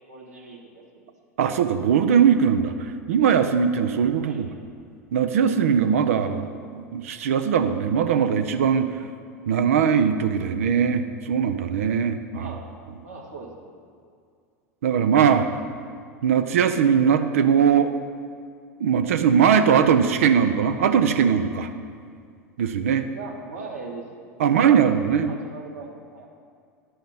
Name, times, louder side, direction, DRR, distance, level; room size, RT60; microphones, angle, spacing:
voice 1, 0.1-1.1 4.2-4.5 6.1-6.6 12.3-12.7 13.0-13.5 23.1-26.3, right 3 dB, 80° right, -4 dB, 1.8 m, -40 dB
voice 2, 1.4-4.5 5.1-6.4 6.9-8.9 9.5-12.5 14.8-15.5 16.2-17.9 18.8-21.7 22.6-23.1 24.4-25.3, right 7 dB, 65° right, 8 dB, 0.5 m, -20 dB
11.0 x 5.7 x 5.6 m, 2.2 s
figure-of-eight pair, 80°, 8 cm